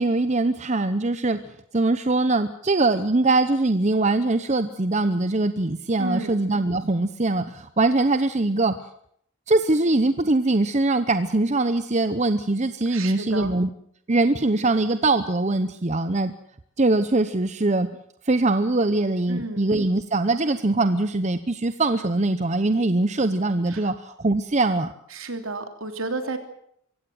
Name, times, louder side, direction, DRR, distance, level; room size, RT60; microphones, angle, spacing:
voice 1, 0.0-1.4 1.7-8.8 9.5-13.7 14.1-16.3 16.8-17.9 18.3-24.9, right 2 dB, 30° right, 11 dB, 0.8 m, -22 dB
voice 2, 6.0-6.4 12.9-13.6 19.3-19.7 23.7-23.9 25.1-26.4, right 2 dB, 65° right, 7 dB, 3.1 m, -32 dB
24.0 x 16.0 x 7.8 m, 0.68 s
head